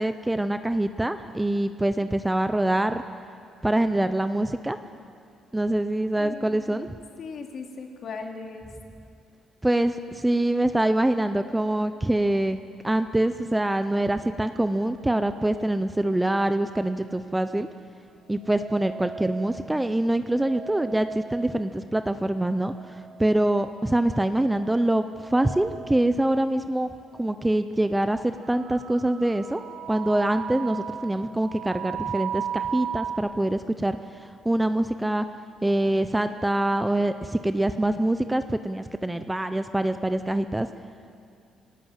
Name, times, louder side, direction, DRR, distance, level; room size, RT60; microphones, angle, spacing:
voice 1, 0.0-3.0 3.6-4.8 5.5-6.9 9.6-12.6 12.8-17.7 18.3-22.7 23.2-26.9 27.2-29.6 29.9-34.0 34.4-35.3 35.6-40.7, right 1 dB, 10° right, 10 dB, 0.6 m, -24 dB
voice 2, 6.2-6.9 7.2-8.7, left 4 dB, 50° left, 3 dB, 2.6 m, -38 dB
sound 1, 18.4-19.7 20.3-21.9 22.4-23.5 24.5-26.2 26.8-26.9 27.8-28.0 28.3-33.2, right 7 dB, 65° right, 2.3 m, -37 dB
25.5 x 18.5 x 7.4 m, 2.4 s
cardioid pair, 140°, 0 cm